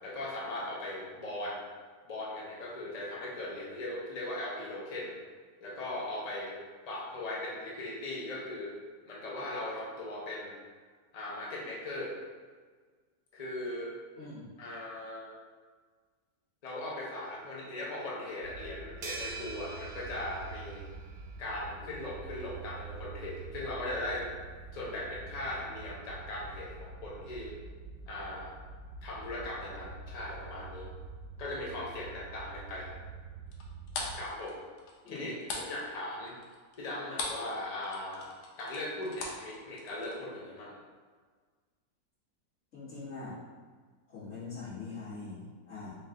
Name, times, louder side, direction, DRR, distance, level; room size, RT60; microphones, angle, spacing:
voice 1, 0.0-1.6 2.1-5.1 5.6-6.6 6.9-8.7 9.1-10.6 11.1-12.1 13.3-13.9 14.6-15.3 16.6-20.9 21.4-24.3 24.7-27.5 28.1-28.6 29.0-30.9 31.4-32.9 34.1-34.6 35.1-36.4 36.8-38.3 38.6-40.8, left 1 dB, 60° left, -5 dB, 0.4 m, -39 dB
voice 2, 14.2-14.5 35.0-35.3 42.7-43.4 44.1-46.0, left 4 dB, 45° left, -11 dB, 1.7 m, -43 dB
sound 1, 18.4-34.3, right 4 dB, 90° right, 1.2 m, -46 dB
sound 2, 19.0-21.5, right 4 dB, 65° right, 0.8 m, -44 dB
sound 3, 33.5-37.5 37.8-40.2, left 3 dB, 80° left, 1.2 m, -40 dB
4.2 x 2.4 x 3.6 m, 1.5 s
omnidirectional pair, 1.7 m